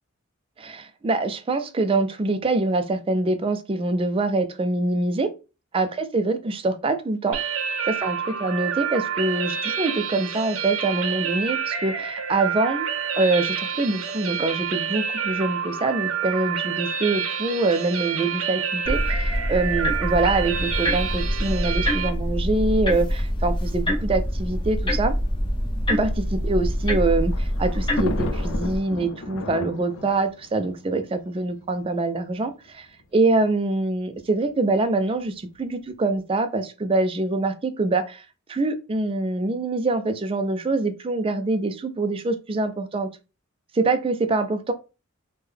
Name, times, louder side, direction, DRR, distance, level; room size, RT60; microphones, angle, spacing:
voice 1, 0.6-5.3 5.7-6.4 6.6-7.4 7.9-12.9 13.1-25.1 25.9-26.1 26.4-32.9 33.1-38.2 38.5-43.1 43.7-44.7, right 2 dB, 25° right, 0.3 m, -24 dB
sound 1, 7.3-22.1, right 7 dB, 85° right, 0.7 m, -28 dB
sound 2, 18.8-28.8, equal, 25° left, 0.6 m, -25 dB
Thunder, 26.5-31.8 32.7-32.8 33.0-33.1 34.2-34.5, left 2 dB, 70° left, 0.5 m, -34 dB
3.5 x 2.2 x 3.3 m
head